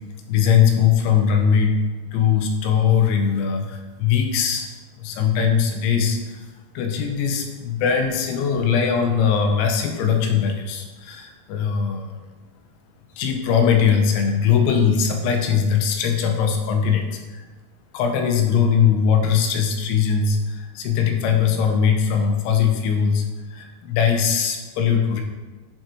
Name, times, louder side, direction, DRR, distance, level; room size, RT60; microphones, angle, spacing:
voice 1, 0.3-1.8 2.1-4.7 5.0-6.4 6.8-12.1 13.2-17.4 17.9-23.2 23.5-25.2, left 7 dB, 90° left, 4 dB, 3.0 m, -20 dB
9.1 x 3.6 x 3.0 m, 1.2 s
omnidirectional pair, 5.3 m